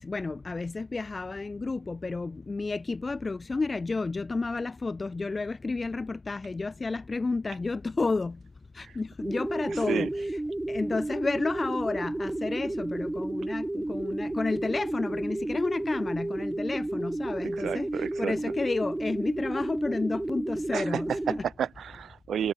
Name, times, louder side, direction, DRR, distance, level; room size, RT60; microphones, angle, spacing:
voice 1, 0.0-8.4 8.7-10.3 10.7-21.4, left 3 dB, 25° left, 5.5 m, -31 dB
sound 1, 9.2-21.4, right 1 dB, 10° right, 2.3 m, -32 dB
voice 2, 9.7-10.1 17.5-18.4 20.7-22.5, right 9 dB, 50° right, 3.2 m, -32 dB
supercardioid pair, 80°, 0 cm